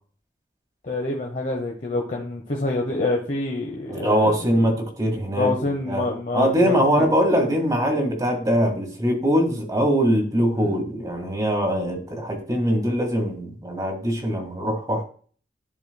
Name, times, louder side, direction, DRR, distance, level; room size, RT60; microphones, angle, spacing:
voice 1, 0.8-4.3 5.3-6.7, left 2 dB, 45° left, -1 dB, 1.1 m, -26 dB
voice 2, 3.9-15.0, equal, 20° right, 1 dB, 1.7 m, -22 dB
11.5 x 4.4 x 2.2 m, 0.43 s
head